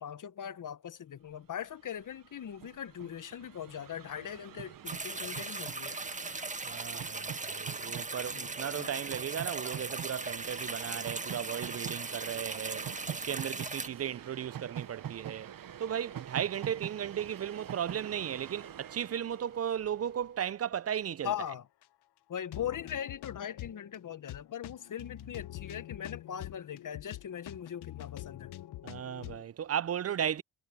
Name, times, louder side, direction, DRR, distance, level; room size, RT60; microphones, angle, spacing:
voice 1, 0.0-6.0 8.3-8.5 8.8-8.9 21.2-21.7 22.3-28.5, left 9 dB, 50° left, 1.3 m, -40 dB
Train, 1.6-1.7 1.9-20.3, right 10 dB, 55° right, 1.1 m, -45 dB
sound 1, 4.9-13.9, right 3 dB, 20° right, 1.7 m, -39 dB
voice 2, 6.7-15.5 15.8-21.3 28.8-30.4, right 9 dB, 35° right, 0.5 m, -35 dB
sound 2, 14.0-14.8 15.1-15.2 15.8-15.9 16.2-16.3 16.7-17.6 18.3-18.7 18.9-19.0 19.7-20.1 20.4-20.5 20.8-20.9 21.5-21.6 21.8-21.9 22.4-29.4, left 15 dB, 70° left, 1.0 m, -46 dB
supercardioid pair, 65°, 41 cm